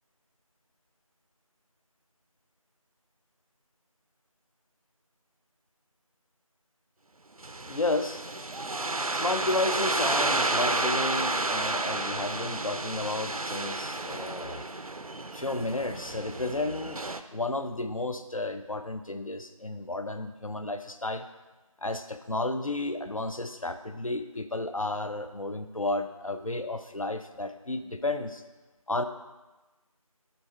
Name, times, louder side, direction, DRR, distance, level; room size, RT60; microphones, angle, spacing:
sound 1, 7.4-17.2, right 2 dB, 75° right, 0.5 m, -31 dB
voice 1, 7.7-8.2 9.1-14.7 15.3-21.3 21.8-28.4 28.9-29.0, left 2 dB, 65° left, 9 dB, 0.7 m, -32 dB
7.5 x 5.6 x 4.4 m, 1.1 s
figure-of-eight pair, 180°, 18 cm